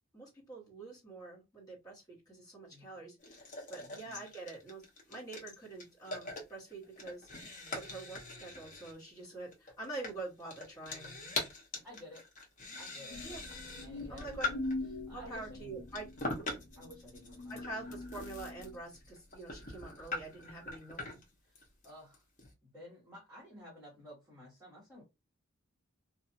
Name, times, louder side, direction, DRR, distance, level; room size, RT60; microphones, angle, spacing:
voice 1, 0.1-4.8 5.1-7.3 7.7-11.1 13.2-13.4 14.1-14.6 15.1-16.1 17.5-21.0, right 2 dB, 15° left, 1.3 m, -46 dB
sound 1, 3.2-14.9 15.4-22.5, left 2 dB, 35° left, 0.8 m, -43 dB
voice 2, 3.8-4.2 11.8-12.2 12.8-13.2 13.8-15.8 16.8-17.8 21.4-22.2 22.6-25.0, left 1 dB, 10° right, 1.0 m, -53 dB
sound 2, 13.1-18.8, left 2 dB, 80° left, 0.5 m, -43 dB
2.7 x 2.4 x 2.6 m
head